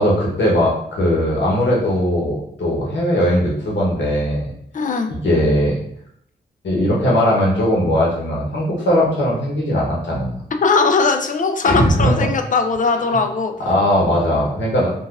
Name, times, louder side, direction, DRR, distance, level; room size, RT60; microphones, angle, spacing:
voice 1, 0.0-4.5 5.2-5.8 6.6-10.4 11.6-12.1 13.6-14.9, equal, 80° left, -4 dB, 1.1 m, -19 dB
voice 2, 4.7-5.1 10.6-13.5, left 4 dB, 45° left, 6 dB, 0.4 m, -19 dB
3.8 x 2.4 x 2.4 m, 0.71 s
cardioid pair, 65°, 19 cm